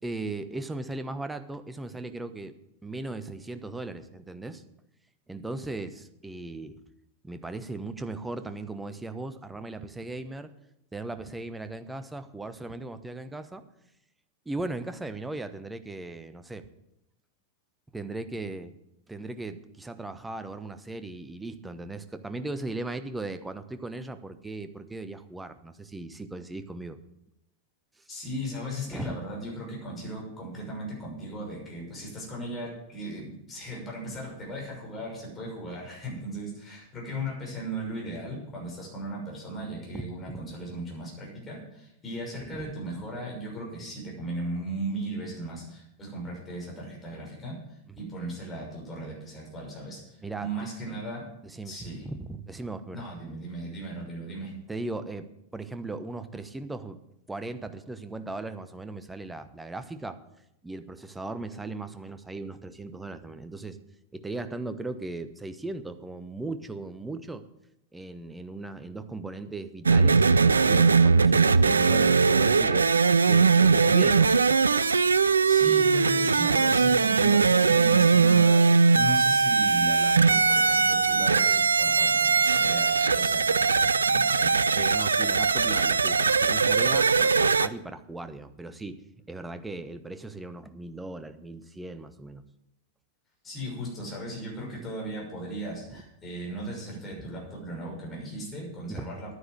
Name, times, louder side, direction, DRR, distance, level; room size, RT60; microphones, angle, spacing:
voice 1, 0.0-2.6 2.8-4.6 5.3-6.8 7.2-10.5 10.9-13.6 14.4-16.7 17.9-18.7 19.1-27.0 28.9-29.2 39.9-40.1 42.5-42.6 47.9-48.0 50.2-50.5 51.4-53.0 54.7-57.0 57.3-60.2 60.6-63.8 64.1-67.5 67.9-72.9 73.2-74.3 84.7-89.0 89.3-92.4 97.2-97.3 98.9-99.1, right 2 dB, 10° right, 10 dB, 1.0 m, -37 dB
voice 2, 28.1-47.6 48.0-51.2 51.6-52.1 52.9-54.5 75.3-78.6 78.9-84.6 93.4-99.4, right 1 dB, 20° left, -2 dB, 6.3 m, -37 dB
sound 1, 69.9-87.7, right 4 dB, 75° right, 0.4 m, -21 dB
10.5 x 9.8 x 7.8 m, 0.83 s
figure-of-eight pair, 90°, 0 cm